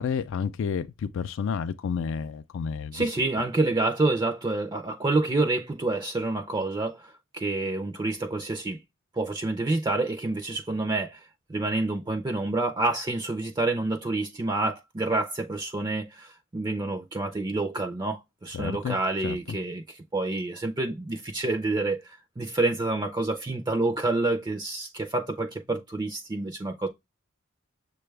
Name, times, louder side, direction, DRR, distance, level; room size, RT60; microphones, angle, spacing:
voice 1, 0.0-3.1 18.5-19.0 19.2-19.4, left 6 dB, 65° left, 0.3 m, -30 dB
voice 2, 2.9-8.8 9.1-11.2 11.5-26.9, right 2 dB, 20° right, 0.4 m, -28 dB
6.7 x 2.3 x 3.2 m
head